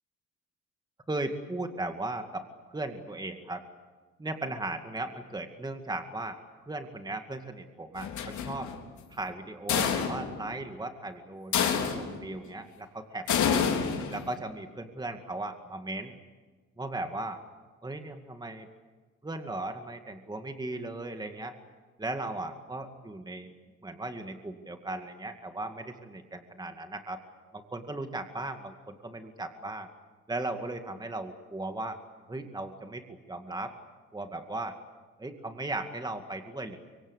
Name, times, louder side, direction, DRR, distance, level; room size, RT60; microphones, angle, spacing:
voice 1, 1.1-2.5 2.7-3.6 4.2-6.4 6.7-8.7 9.1-13.7 14.1-16.2 16.8-17.4 17.8-18.7 19.2-21.5 22.0-23.5 23.8-27.2 27.5-29.9 30.3-32.0 32.3-33.7 34.1-34.8 35.2-36.8, right 2 dB, 15° right, 6 dB, 2.1 m, -37 dB
sound 1, 8.0-8.8 9.7-10.4 11.5-12.2 13.3-14.3, left 7 dB, 75° left, 3.9 m, -28 dB
24.5 x 24.0 x 8.2 m, 1.4 s
cardioid pair, 90°, 30 cm